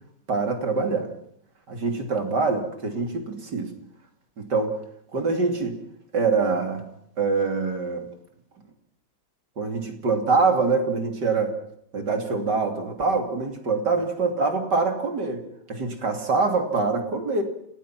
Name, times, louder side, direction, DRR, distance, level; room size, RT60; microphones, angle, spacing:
voice 1, 0.3-1.1 1.7-3.7 4.4-4.7 5.1-5.8 6.1-6.8 7.2-8.0 9.6-11.6 11.9-15.4 15.7-17.4, right 4 dB, 65° right, 5 dB, 3.5 m, -24 dB
28.5 x 18.5 x 6.0 m, 0.72 s
omnidirectional pair, 2.0 m